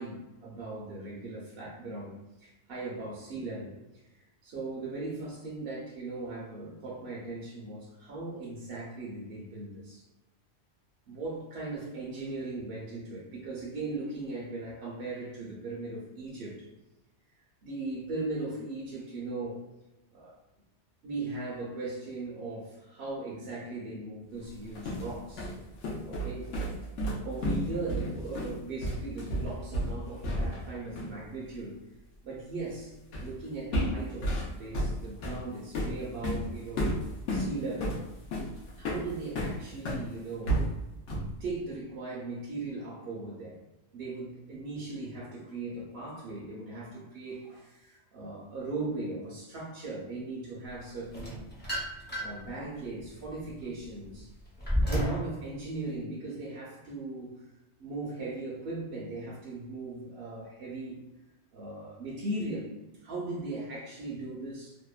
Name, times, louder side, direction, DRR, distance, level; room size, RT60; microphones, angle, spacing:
voice 1, 0.0-4.0 4.4-10.0 11.1-16.7 17.6-19.7 20.1-20.3 21.0-25.5 26.0-26.6 27.2-31.8 32.2-37.0 37.3-38.0 38.8-40.7 41.4-43.6 43.9-51.4 52.2-54.3 54.9-57.5 57.8-61.0 61.5-62.7 63.0-64.8, right 2 dB, 60° right, -5 dB, 0.8 m, -38 dB
sound 1, 24.5-30.7 31.0-31.2 33.1-33.4 33.7-40.1 40.5-41.4, equal, 85° left, 0.9 m, -32 dB
sound 2, 51.1-52.5 53.0-55.3, equal, 15° left, 0.4 m, -31 dB
2.7 x 2.1 x 2.2 m, 1.0 s
omnidirectional pair, 1.2 m